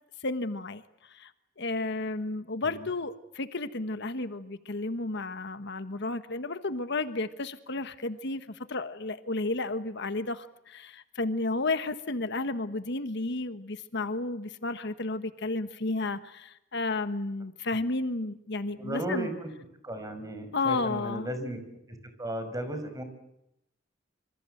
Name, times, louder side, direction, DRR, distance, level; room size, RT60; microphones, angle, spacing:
voice 1, 0.2-1.3 1.6-19.3 20.5-21.3, left 2 dB, 60° left, 10 dB, 1.4 m, -32 dB
voice 2, 18.8-19.5 19.8-21.6 22.2-23.0, right 1 dB, 20° right, 9 dB, 5.5 m, -35 dB
27.0 x 26.0 x 7.9 m, 0.82 s
head